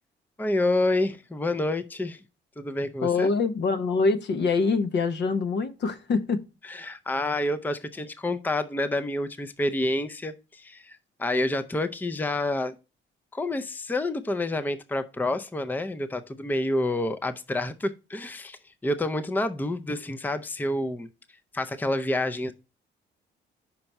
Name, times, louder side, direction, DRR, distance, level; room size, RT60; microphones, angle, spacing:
voice 1, 0.4-2.2 2.6-3.3 6.6-12.7 13.3-21.1 21.5-22.5, left 1 dB, 10° left, 0.5 m, -28 dB
voice 2, 3.0-6.4, left 4 dB, 60° left, 0.9 m, -24 dB
5.8 x 4.4 x 5.3 m
cardioid pair, 90°, 20 cm